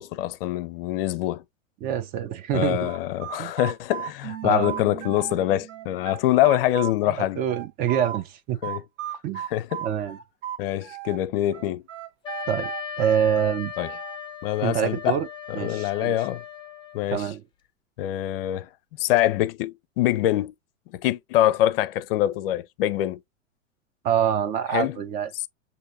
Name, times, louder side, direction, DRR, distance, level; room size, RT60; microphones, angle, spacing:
voice 1, 0.0-1.4 2.5-7.4 8.6-8.8 9.5-9.9 10.6-11.8 13.8-13.9 14.4-15.2 15.5-16.4 16.9-17.3 18.0-18.7 19.0-20.5 20.9-23.2 24.7-25.0, left 14 dB, 45° left, 0.6 m, -24 dB
voice 2, 1.8-2.9 3.4-3.5 4.4-4.7 7.0-8.6 9.2-9.4 9.8-10.2 12.5-12.7 13.0-13.7 14.6-15.3 15.6-16.1 17.1-17.4 24.0-25.5, right 9 dB, 25° right, 0.5 m, -26 dB
sound 1, 2.8-5.4 5.7-8.2 8.6-11.2 11.5-14.2, right 11 dB, 65° right, 1.2 m, -35 dB
Keyboard (musical), 4.2-6.2, right 12 dB, 40° right, 1.1 m, -40 dB
Wind instrument woodwind instrument, 12.2-17.1, left 7 dB, 10° left, 1.0 m, -37 dB
6.3 x 2.7 x 2.7 m
hypercardioid pair, 105°, 39 cm